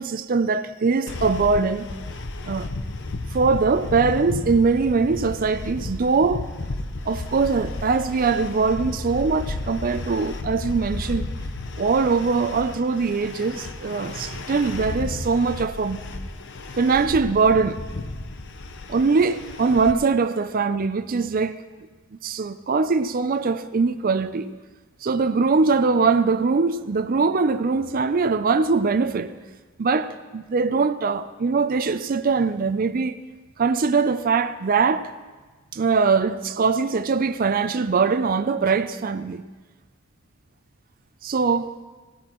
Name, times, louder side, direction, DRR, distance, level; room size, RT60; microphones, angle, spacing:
voice 1, 0.0-1.9 2.4-2.7 3.3-6.4 7.1-11.3 11.8-16.0 16.8-17.8 18.9-21.6 22.2-24.5 25.0-29.3 29.8-33.2 33.6-35.1 35.7-39.4 41.2-41.8, right 4 dB, 40° right, 0.5 m, -22 dB
sound 1, 1.1-19.9, left 2 dB, 55° left, 0.8 m, -33 dB
18.0 x 16.5 x 3.0 m
head